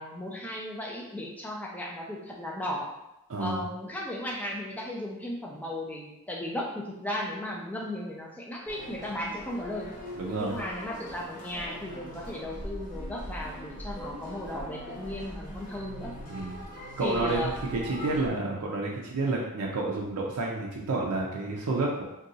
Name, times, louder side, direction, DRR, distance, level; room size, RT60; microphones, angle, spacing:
voice 1, 0.0-2.9 3.4-9.9 10.4-16.1 17.0-17.5, left 1 dB, 5° left, -2 dB, 0.4 m, -36 dB
voice 2, 3.3-3.6 10.2-10.6 16.3-16.6 17.0-22.0, right 2 dB, 90° right, -2 dB, 0.5 m, -30 dB
sound 1, 8.7-18.3, equal, 35° left, 0.8 m, -41 dB
2.6 x 2.3 x 3.8 m, 0.89 s
head